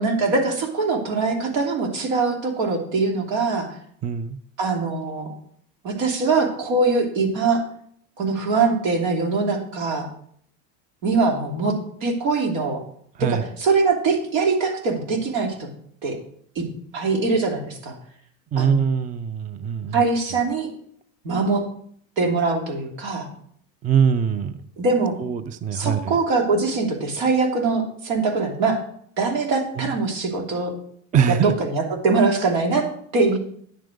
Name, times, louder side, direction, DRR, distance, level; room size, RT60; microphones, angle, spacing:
voice 1, 0.0-3.7 4.6-5.3 5.8-7.6 8.2-10.1 11.0-11.7 12.0-12.8 13.2-15.7 16.0-16.2 16.5-16.6 16.9-18.0 18.6-18.9 19.9-20.7 21.2-21.6 22.2-23.3 24.8-25.2 25.7-28.8 29.2-30.7 31.3-32.9 33.1-33.4, right 3 dB, 75° right, 2 dB, 3.0 m, -22 dB
voice 2, 4.0-4.4 13.2-13.4 18.5-20.0 23.8-24.6 25.2-26.2 29.8-29.9 31.1-31.5, right 7 dB, 20° right, 13 dB, 0.4 m, -22 dB
10.0 x 7.6 x 5.1 m, 0.64 s
supercardioid pair, 120°, 42 cm